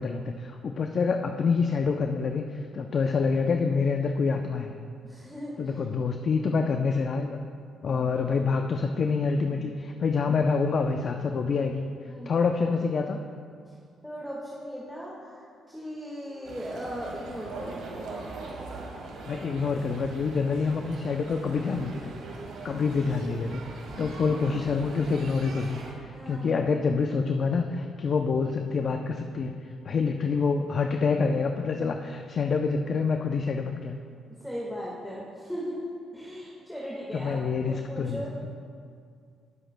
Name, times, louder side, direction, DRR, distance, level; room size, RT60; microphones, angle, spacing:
voice 1, 0.0-4.8 5.6-7.4 7.8-11.8 12.3-13.2 19.3-22.1 22.6-34.0 37.1-38.2, left 5 dB, 50° left, 5 dB, 0.5 m, -27 dB
voice 2, 5.0-5.5 7.9-8.2 9.5-9.7 12.1-12.3 14.0-17.8 26.1-26.6 29.9-30.0 34.4-35.8 36.1-38.3, equal, ahead, -5 dB, 1.6 m, -38 dB
sound 1, 16.4-25.9, right 3 dB, 85° right, 1.8 m, -40 dB
19.0 x 7.7 x 2.2 m, 2.3 s
cardioid pair, 90°, 0 cm